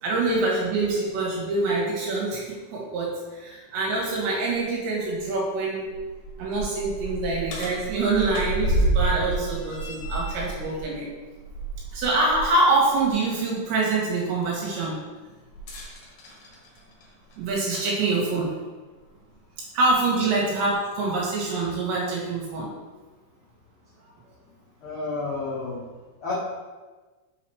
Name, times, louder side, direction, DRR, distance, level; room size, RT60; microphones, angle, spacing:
voice 1, 0.0-5.9 6.4-11.1 11.9-15.0 17.4-18.6 19.7-22.7, right 3 dB, 75° right, -3 dB, 4.0 m, -25 dB
sound 1, 5.8-12.5 12.9-13.1 15.5-17.9 18.9-19.0 19.8-19.9, right 2 dB, 60° left, 2.5 m, -30 dB
voice 2, 24.8-25.8 26.2-26.3, left 3 dB, 90° left, -8 dB, 1.1 m, -31 dB
7.1 x 5.1 x 4.8 m, 1.3 s
omnidirectional pair, 5.2 m